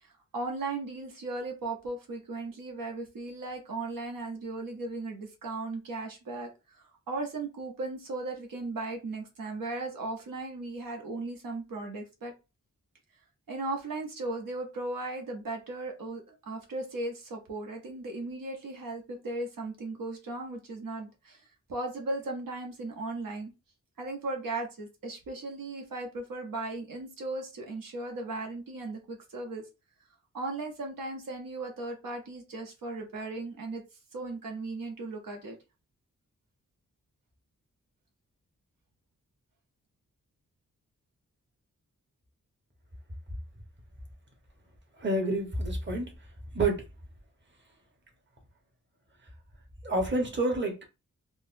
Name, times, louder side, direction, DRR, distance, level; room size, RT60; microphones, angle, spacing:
voice 1, 0.0-12.3 13.5-23.5 24.0-29.6 30.3-33.8 34.1-35.6, right 2 dB, 85° right, 0.8 m, -37 dB
voice 2, 45.0-46.1 46.5-46.8 49.8-50.9, right 2 dB, 35° right, 1.1 m, -28 dB
3.8 x 2.0 x 2.6 m
wide cardioid pair, 70°, 33 cm